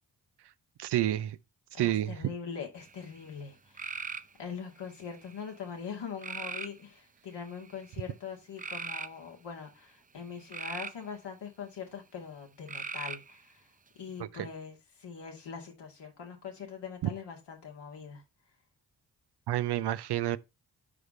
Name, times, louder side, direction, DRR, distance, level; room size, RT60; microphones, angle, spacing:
voice 1, 0.8-1.4 1.8-2.2 14.2-14.5 19.5-20.4, right 13 dB, 75° right, 0.6 m, -29 dB
voice 2, 1.7-4.1 4.4-13.7 14.0-18.2, left 6 dB, 80° left, 2.2 m, -42 dB
sound 1, 2.8-3.2 3.8-4.3 5.0-5.5 6.2-6.8 7.5-7.8 8.6-9.1 10.2-11.0 12.7-13.4, right 5 dB, 20° right, 0.5 m, -39 dB
5.0 x 4.9 x 5.4 m
supercardioid pair, 40°, 41 cm